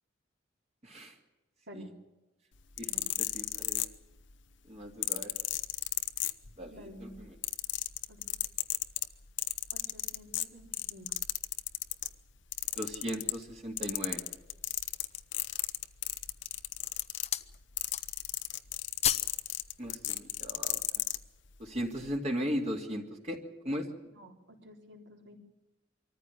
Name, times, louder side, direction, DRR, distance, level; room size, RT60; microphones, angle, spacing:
voice 1, 0.8-1.2 1.7-1.9 2.8-3.8 4.7-5.3 6.6-7.3 12.8-14.2 19.8-20.8 21.6-23.4 23.6-23.9, equal, 35° right, 1 dB, 2.5 m, -37 dB
sound 1, 2.6-4.3 5.0-6.8 7.1-12.1 12.5-13.5 13.8-21.2 21.9-22.1, left 15 dB, 70° left, 0.9 m, -33 dB
voice 2, 2.8-3.2 6.7-7.2 8.1-8.4 9.7-11.1 24.1-25.4, equal, 65° right, 3 dB, 3.8 m, -51 dB
sound 2, 12.6-13.6 14.2-14.3 14.8-15.4 16.1-16.4 16.8-17.5 17.8-18.3 18.6-19.4 19.7-19.9, left 10 dB, 35° left, 0.7 m, -34 dB
24.5 x 14.5 x 9.9 m, 1.1 s
head